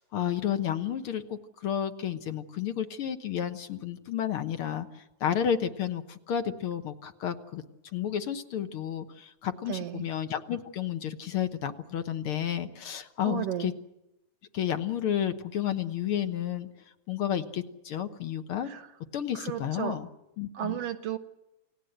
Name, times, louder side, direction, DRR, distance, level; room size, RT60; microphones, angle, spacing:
voice 1, 0.0-4.9 5.2-7.6 7.9-13.7 14.5-16.7 17.1-18.7 19.1-20.1 20.4-20.8, left 9 dB, 55° left, 9 dB, 1.7 m, -31 dB
voice 2, 9.7-10.1 13.3-13.7 18.7-18.8 19.4-20.0 20.6-21.2, right 10 dB, 65° right, 11 dB, 1.8 m, -33 dB
29.0 x 18.0 x 8.0 m, 0.91 s
omnidirectional pair, 3.3 m